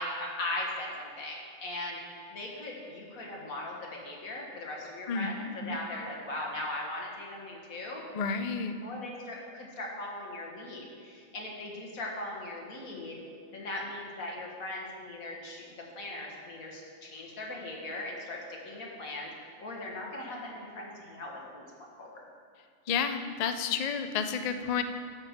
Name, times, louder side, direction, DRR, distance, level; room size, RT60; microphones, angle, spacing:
voice 1, 0.0-2.0 2.3-8.0 8.8-13.2 13.5-15.6 16.0-19.3 19.6-21.7 22.0-22.2, left 2 dB, 85° left, -1 dB, 2.0 m, -39 dB
voice 2, 8.1-8.8 22.9-24.8, left 6 dB, 60° left, 8 dB, 0.4 m, -30 dB
11.0 x 5.2 x 6.3 m, 2.2 s
omnidirectional pair, 1.4 m